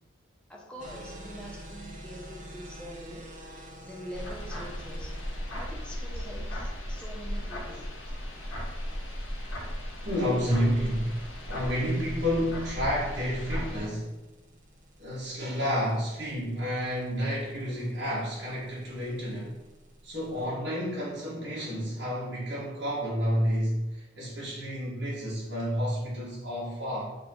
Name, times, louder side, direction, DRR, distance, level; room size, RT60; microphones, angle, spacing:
voice 1, 0.5-3.3 3.8-7.9, equal, 5° left, -2 dB, 0.7 m, -44 dB
sound 1, 0.8-20.5, right 1 dB, 35° right, 0.9 m, -50 dB
sound 2, 4.1-13.9, equal, 75° left, 1.6 m, -36 dB
voice 2, 10.0-14.1 15.0-19.6 20.0-27.0, equal, 55° right, -8 dB, 2.0 m, -30 dB
7.9 x 3.1 x 3.9 m, 1.0 s
head